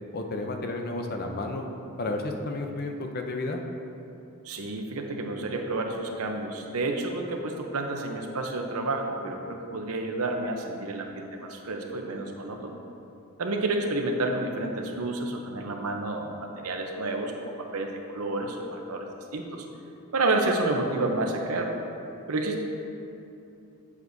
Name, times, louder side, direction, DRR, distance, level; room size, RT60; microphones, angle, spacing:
voice 1, 0.1-1.7 2.0-3.6, left 2 dB, 45° left, 4 dB, 0.5 m, -32 dB
voice 2, 4.4-12.8 13.4-19.7 20.1-21.7 22.3-22.6, right 2 dB, 80° right, 3 dB, 0.7 m, -30 dB
8.3 x 7.2 x 2.7 m, 2.8 s
head